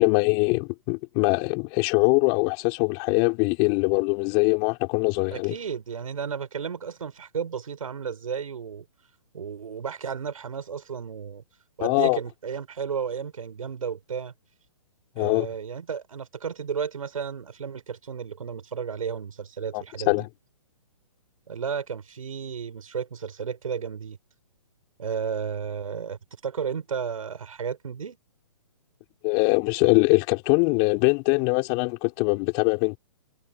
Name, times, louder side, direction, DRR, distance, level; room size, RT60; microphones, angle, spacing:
voice 1, 0.0-5.5 11.8-12.2 15.2-15.5 19.7-20.3 29.2-33.0, left 33 dB, 30° left, 4.8 m, -22 dB
voice 2, 5.3-8.8 9.3-11.4 11.8-14.3 15.2-20.1 21.5-24.2 25.0-28.2, right 6 dB, 80° right, 7.0 m, -33 dB
hypercardioid pair, 150°, 18 cm